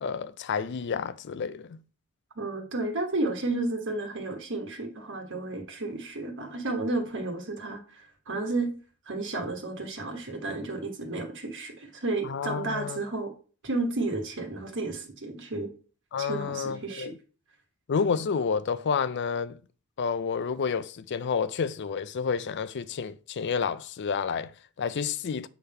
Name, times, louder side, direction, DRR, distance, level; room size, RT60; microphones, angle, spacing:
voice 1, 0.0-1.8 12.2-13.0 16.1-17.2 17.9-19.6 20.0-25.5, left 6 dB, 50° left, 0.4 m, -30 dB
voice 2, 2.4-8.7 9.1-13.3 13.6-15.7 16.2-17.1, right 2 dB, 55° right, 1.3 m, -32 dB
7.9 x 3.5 x 5.6 m
head